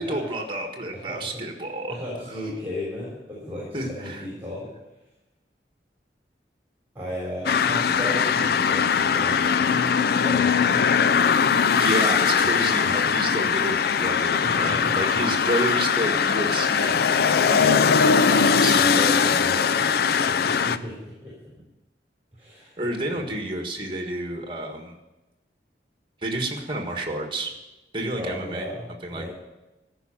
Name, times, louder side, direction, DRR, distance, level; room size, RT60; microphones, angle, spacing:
voice 1, 0.0-1.9 3.7-4.2 11.7-17.1 17.5-18.8 22.8-25.0 26.2-27.5 27.9-28.7 29.0-29.3, right 1 dB, 30° right, 3 dB, 1.6 m, -30 dB
voice 2, 0.9-1.4 1.9-4.7 7.0-10.9 14.4-15.2 18.8-21.3 22.4-22.9 23.1-23.4 28.1-29.3, left 1 dB, 10° right, -5 dB, 3.5 m, -35 dB
sound 1, 7.5-20.8, left 6 dB, 60° left, 0.4 m, -21 dB
13.5 x 5.4 x 8.8 m, 1.0 s
head